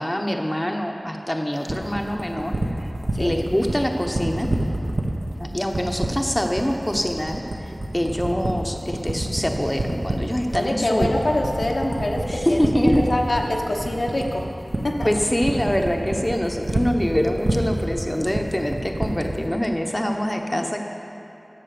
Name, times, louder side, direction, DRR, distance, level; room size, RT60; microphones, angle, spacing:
voice 1, 0.0-2.9 3.2-4.5 5.4-11.1 12.3-13.0 15.0-20.8, equal, 15° left, 2 dB, 0.9 m, -24 dB
sound 1, 1.7-19.4, right 2 dB, 70° right, 1.3 m, -26 dB
voice 2, 10.5-14.4 14.8-15.1, left 1 dB, 75° left, 0 dB, 1.2 m, -25 dB
12.0 x 7.4 x 6.8 m, 3.0 s
wide cardioid pair, 50°, 0 cm